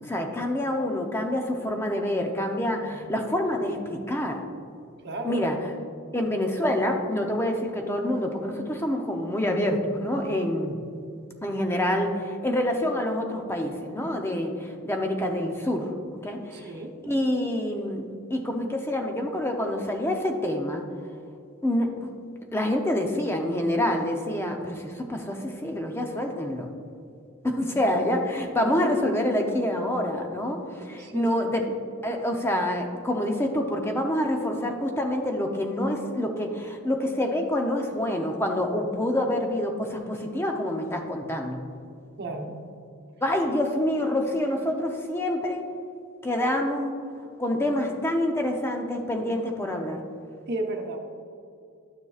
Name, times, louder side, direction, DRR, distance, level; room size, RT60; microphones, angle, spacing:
voice 1, 0.0-4.5 5.2-5.6 6.1-10.8 11.4-15.9 16.2-16.7 17.0-18.0 18.3-20.8 21.6-22.1 22.5-26.7 27.4-31.7 32.0-41.6 43.2-45.7 46.2-46.9 47.4-50.0, left 1 dB, 10° left, 3 dB, 0.7 m, -27 dB
voice 2, 5.0-5.5 16.5-16.9 28.6-28.9 30.8-31.5 42.2-42.5 50.5-51.0, right 2 dB, 50° right, 2 dB, 1.0 m, -33 dB
12.0 x 6.6 x 2.4 m, 2.5 s
head